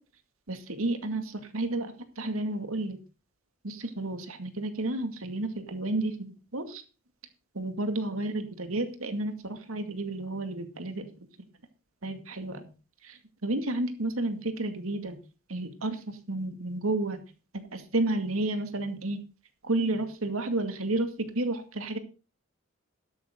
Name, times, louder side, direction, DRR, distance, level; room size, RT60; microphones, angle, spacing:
voice 1, 0.5-3.0 3.6-6.1 6.5-6.8 7.5-11.1 12.0-12.7 13.0-15.2 15.5-17.2 17.7-19.2 19.6-22.0, right 2 dB, 85° right, 8 dB, 2.3 m, -31 dB
12.5 x 11.0 x 3.8 m, 0.34 s
head